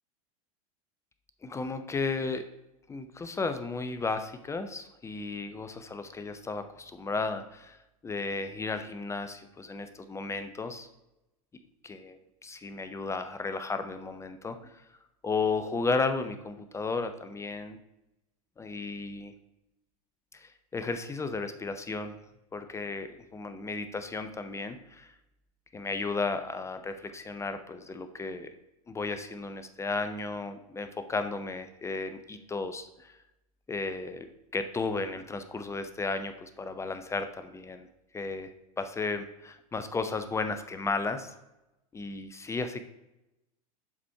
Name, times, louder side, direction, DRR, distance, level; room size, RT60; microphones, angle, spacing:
voice 1, 1.4-2.5 2.9-10.9 11.8-14.8 15.2-17.8 18.6-19.3 20.3-22.2 22.5-25.1 25.7-28.5 28.9-33.2 33.7-34.3 34.5-37.9 38.1-41.3 41.9-42.8, left 3 dB, 15° left, 9 dB, 0.5 m, -34 dB
7.2 x 4.2 x 4.6 m, 0.92 s
figure-of-eight pair, 90°, 19 cm